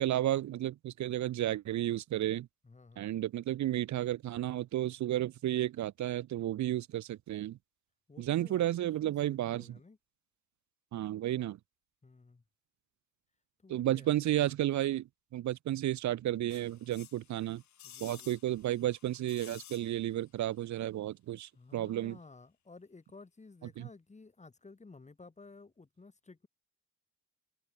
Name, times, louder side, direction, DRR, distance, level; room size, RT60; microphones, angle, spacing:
voice 1, 0.0-2.5 3.0-7.6 8.2-9.7 10.9-11.6 13.7-17.6 18.0-22.2 23.8-23.9, right 13 dB, 70° right, 1.0 m, -32 dB
voice 2, 2.6-3.1 8.1-10.0 12.0-12.4 13.6-14.1 17.8-18.4 21.5-26.5, left 3 dB, 25° left, 3.9 m, -54 dB
sound 1, 16.5-20.3 20.6-20.7, left 11 dB, 70° left, 4.7 m, -54 dB
cardioid pair, 90°, 30 cm